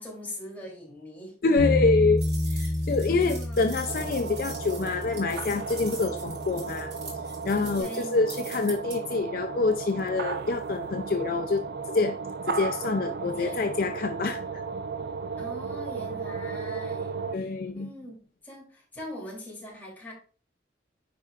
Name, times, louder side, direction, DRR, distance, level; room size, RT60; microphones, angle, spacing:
voice 1, 0.0-1.4 3.0-3.6 7.8-8.2 13.2-13.6 15.4-17.2 17.7-20.1, left 1 dB, 10° left, 3.0 m, -42 dB
voice 2, 1.4-6.9 7.4-12.2 12.5-14.6 17.3-17.9, left 3 dB, 50° left, 0.4 m, -26 dB
Bass guitar, 1.6-7.8, left 1 dB, 15° right, 2.9 m, -31 dB
sound 1, 2.2-9.0, right 4 dB, 75° right, 3.4 m, -43 dB
sound 2, 3.9-17.4, right 5 dB, 55° right, 0.4 m, -35 dB
10.0 x 4.5 x 2.4 m
head